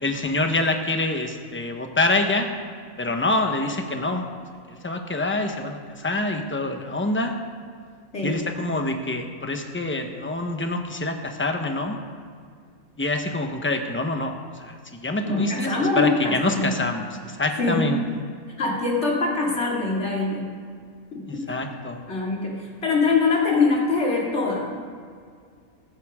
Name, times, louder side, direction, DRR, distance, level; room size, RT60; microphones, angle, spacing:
voice 1, 0.0-2.5 3.0-4.2 4.7-7.3 8.2-12.0 13.0-18.0 21.3-22.0, left 2 dB, 10° left, 4 dB, 0.8 m, -26 dB
voice 2, 15.2-16.7 17.6-17.8 18.6-20.5 21.1-21.6 22.1-24.8, left 3 dB, 50° left, -3 dB, 2.7 m, -23 dB
15.5 x 15.0 x 3.6 m, 2.1 s
omnidirectional pair, 1.5 m